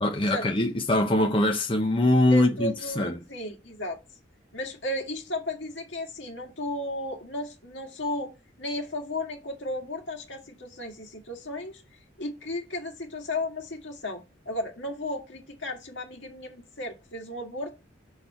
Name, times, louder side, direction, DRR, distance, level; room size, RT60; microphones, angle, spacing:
voice 1, 0.0-3.1, left 1 dB, 30° left, 0.9 m, -23 dB
voice 2, 2.3-4.0 4.5-8.3 8.6-11.8 12.2-17.7, left 1 dB, 70° left, 1.9 m, -34 dB
6.4 x 5.4 x 4.2 m
head